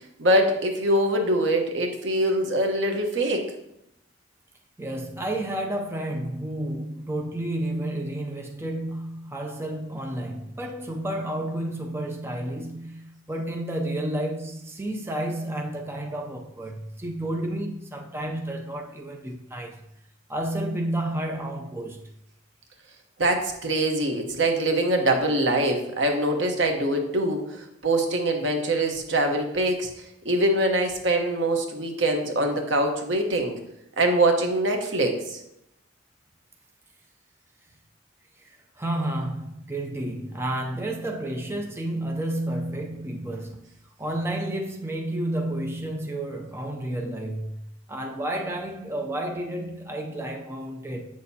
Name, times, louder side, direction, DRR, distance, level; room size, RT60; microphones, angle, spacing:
voice 1, 0.2-3.4 23.2-29.9 30.2-33.5 34.0-35.4, right 1 dB, 70° right, 1.1 m, -23 dB
voice 2, 4.8-19.8 20.3-22.1 38.4-43.7 44.0-51.2, right 1 dB, 15° right, 0.5 m, -31 dB
8.0 x 6.4 x 2.8 m
head